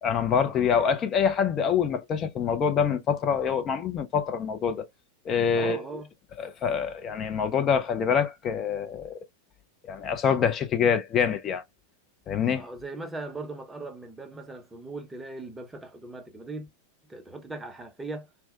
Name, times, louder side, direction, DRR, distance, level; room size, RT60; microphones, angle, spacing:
voice 1, 0.0-4.9 5.3-5.8 6.4-9.2 9.9-11.6 12.3-12.7, left 7 dB, 30° left, 0.5 m, -25 dB
voice 2, 5.6-6.1 12.5-16.7 17.1-18.3, right 2 dB, 10° right, 0.7 m, -39 dB
4.3 x 2.0 x 2.3 m
figure-of-eight pair, 90°, 0 cm